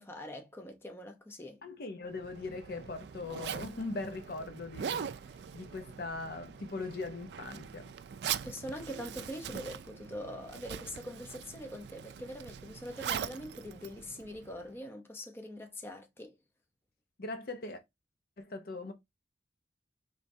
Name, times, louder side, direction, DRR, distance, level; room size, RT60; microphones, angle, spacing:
voice 1, 0.0-1.6 8.4-16.4, equal, 15° left, 0.7 m, -43 dB
voice 2, 1.6-5.1 5.5-7.9 17.2-17.8 18.4-18.9, left 3 dB, 55° left, 0.6 m, -40 dB
Zipper (clothing), 2.1-14.8, right 8 dB, 65° right, 0.3 m, -42 dB
4.5 x 3.2 x 2.6 m
head